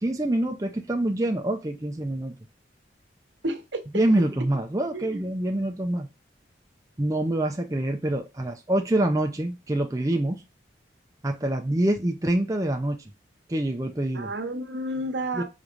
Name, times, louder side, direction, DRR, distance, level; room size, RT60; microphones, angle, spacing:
voice 1, 0.0-2.4 3.9-6.1 7.0-10.4 11.2-13.0 13.5-14.3 15.3-15.4, right 1 dB, 20° right, 0.5 m, -26 dB
voice 2, 3.4-3.8 4.9-5.2 14.1-15.4, right 1 dB, 75° right, 1.0 m, -31 dB
4.8 x 4.1 x 2.5 m
head